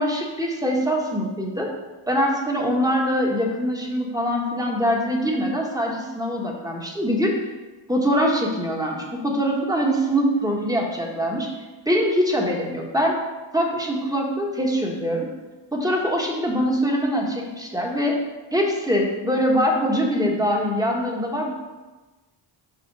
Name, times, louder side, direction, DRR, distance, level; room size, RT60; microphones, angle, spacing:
voice 1, 0.0-1.7 2.1-7.3 7.9-11.5 11.8-13.2 13.5-15.3 15.7-18.2 18.5-21.5, equal, 5° right, -1 dB, 1.4 m, -23 dB
5.6 x 5.2 x 4.8 m, 1.2 s
cardioid pair, 65°, 49 cm